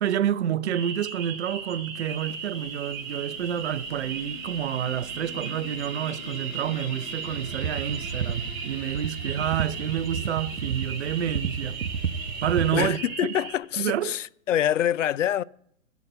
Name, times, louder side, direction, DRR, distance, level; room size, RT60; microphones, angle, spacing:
voice 1, 0.0-11.8 12.4-13.0 13.3-13.4 13.8-14.1, right 10 dB, 50° right, 0.8 m, -28 dB
sound 1, 0.7-13.5, right 6 dB, 25° right, 2.8 m, -37 dB
sound 2, 2.0-12.9, left 3 dB, 80° left, 3.1 m, -45 dB
sound 3, 7.3-12.9, right 7 dB, 85° right, 0.8 m, -32 dB
voice 2, 12.7-15.4, left 11 dB, 65° left, 0.5 m, -25 dB
12.0 x 8.3 x 8.6 m
figure-of-eight pair, 120°, 41 cm